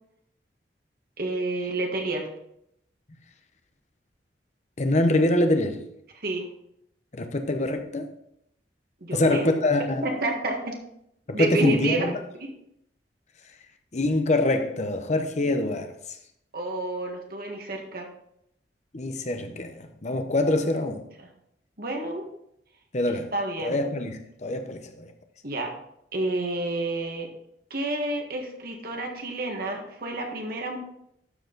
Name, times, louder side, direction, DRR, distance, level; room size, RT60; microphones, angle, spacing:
voice 1, 1.2-2.3 6.1-6.5 9.0-9.5 10.0-10.7 11.3-12.1 12.4-12.5 16.5-18.1 20.4-20.8 21.2-21.3 21.8-22.2 23.3-23.8 25.4-25.7 26.1-27.3 27.7-30.8, right 2 dB, 55° right, 1.7 m, -29 dB
voice 2, 4.8-5.8 7.1-8.1 9.1-10.1 11.3-12.2 13.9-15.9 18.9-21.0 22.9-23.3 23.6-25.1, left 2 dB, 40° left, 0.9 m, -25 dB
12.5 x 4.7 x 4.0 m
head